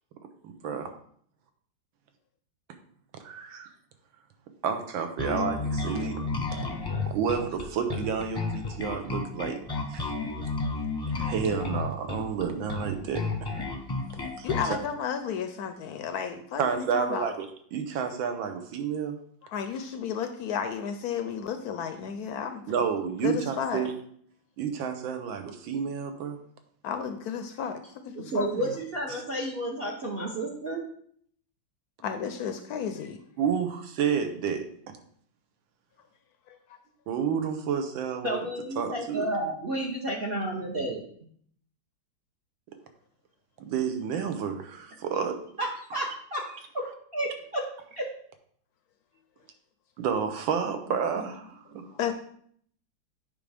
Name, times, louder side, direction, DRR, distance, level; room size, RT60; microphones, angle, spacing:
voice 1, 0.4-0.9 3.2-3.7 4.6-6.2 7.1-9.6 9.9-10.1 11.1-13.2 14.4-14.8 16.6-17.5 17.7-19.1 22.7-23.9 24.6-26.4 29.1-29.2 33.4-34.7 37.1-38.5 38.8-39.3 43.6-45.4 50.0-51.9, right 7 dB, 85° right, 7 dB, 1.6 m, -30 dB
Bass guitar, 5.2-14.8, left 3 dB, 20° left, 0.7 m, -32 dB
voice 2, 14.4-17.3 19.4-22.6 23.2-23.9 26.8-28.7 32.0-33.2 36.5-36.6 51.9-52.1, left 7 dB, 75° left, 8 dB, 0.9 m, -33 dB
voice 3, 28.2-30.9 38.2-41.0 45.6-47.7 48.0-48.1, right 1 dB, 50° right, 0 dB, 0.7 m, -31 dB
8.7 x 5.1 x 3.4 m, 0.63 s
omnidirectional pair, 2.1 m